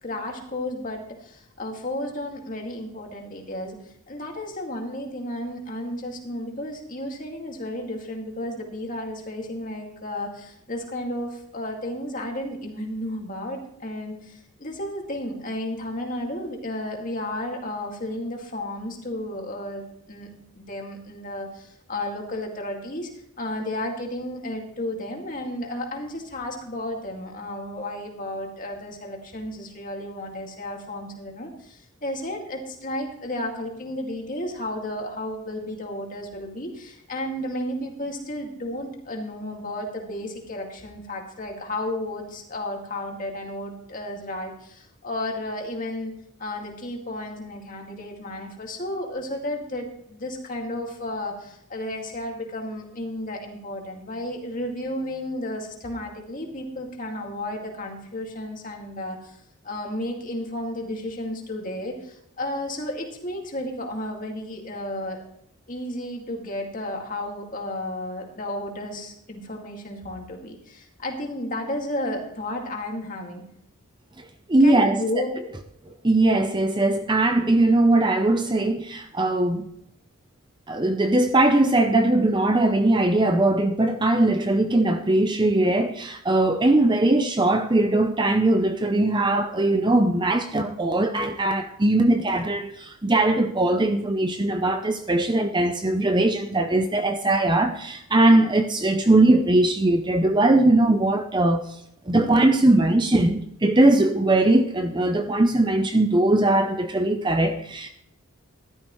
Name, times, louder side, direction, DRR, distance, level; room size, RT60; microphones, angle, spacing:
voice 1, 0.0-23.1 23.4-46.1 46.4-65.2 65.7-73.4 74.6-75.3, left 1 dB, 35° left, 2.3 m, -33 dB
voice 2, 74.5-75.0 76.0-79.7 80.7-101.8 102.1-107.9, right 2 dB, 20° right, 0.6 m, -20 dB
15.0 x 12.5 x 3.2 m
head